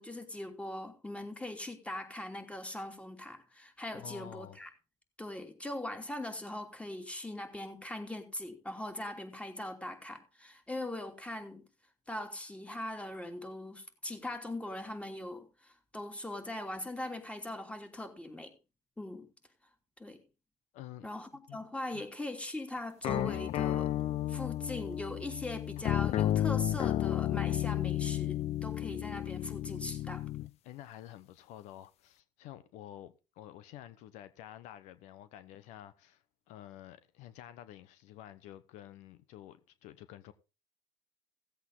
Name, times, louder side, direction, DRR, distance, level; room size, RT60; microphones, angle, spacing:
voice 1, 0.0-4.7 5.2-11.6 12.1-18.5 19.0-19.3 20.0-20.2 21.0-23.9 24.3-30.2, left 1 dB, 10° left, 2.9 m, -41 dB
voice 2, 3.9-4.6 20.7-21.1 21.5-21.7 21.9-22.1 30.6-40.3, left 12 dB, 80° left, 1.1 m, -50 dB
sound 1, 23.0-30.5, left 12 dB, 60° left, 0.5 m, -32 dB
16.5 x 8.2 x 3.9 m
supercardioid pair, 95°, 12 cm